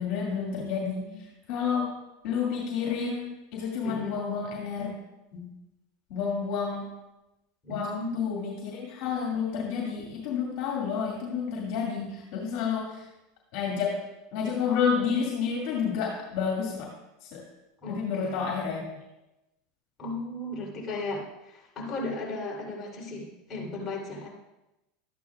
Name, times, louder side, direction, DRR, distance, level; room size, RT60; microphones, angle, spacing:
voice 1, 0.0-1.9 2.2-4.9 5.3-5.5 6.1-6.9 7.7-13.1 13.5-16.9 17.2-17.4 17.9-19.0, left 6 dB, 60° left, -1 dB, 2.3 m, -30 dB
voice 2, 3.8-4.2 7.6-8.2 17.8-18.5 20.0-24.3, left 2 dB, 30° left, -4 dB, 3.4 m, -35 dB
13.0 x 9.0 x 2.4 m, 0.97 s
supercardioid pair, 120°, 0 cm